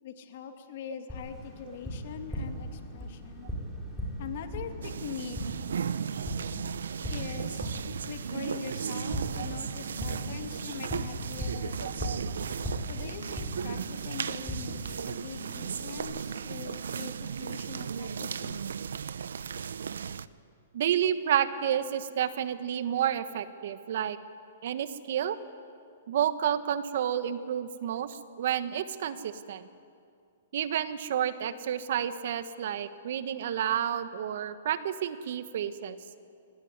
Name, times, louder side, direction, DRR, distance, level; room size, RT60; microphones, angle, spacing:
voice 1, 0.0-3.5 4.2-5.4 7.1-7.7 8.1-12.0 12.9-18.7, left 8 dB, 55° left, 6 dB, 2.3 m, -43 dB
Tap, 1.1-16.0, equal, 5° left, 6.1 m, -39 dB
sound 1, 4.8-20.3, right 7 dB, 80° right, 0.7 m, -36 dB
voice 2, 20.7-24.2 24.6-25.4 26.1-29.6 30.5-36.0, right 9 dB, 65° right, 12 dB, 1.4 m, -30 dB
22.5 x 19.0 x 9.6 m, 2.4 s
hypercardioid pair, 140°, 0 cm